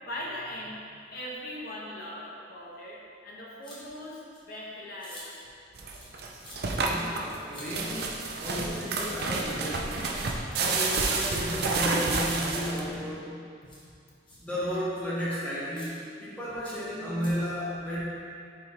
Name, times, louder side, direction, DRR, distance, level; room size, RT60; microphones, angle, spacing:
voice 1, 0.0-0.8 1.1-5.2, left 1 dB, 55° left, -5 dB, 1.1 m, -40 dB
sound 1, 3.6-3.8 4.3-4.4 5.0-5.2 5.9-6.1 6.4-6.6 7.5-7.7 8.9-9.1 10.2-10.7 11.6-11.8 12.2-12.4 13.6-13.8 14.3-14.4 15.2-15.3 15.7-15.9 16.6-16.8 17.2-17.3, left 1 dB, 25° left, 1.4 m, -47 dB
sound 2, 5.8-13.0, right 3 dB, 60° right, 0.5 m, -30 dB
voice 2, 6.8-8.1 8.4-10.2 10.6-13.4 14.4-18.0, equal, 5° left, -9 dB, 0.8 m, -33 dB
5.2 x 4.5 x 4.1 m, 2.4 s
head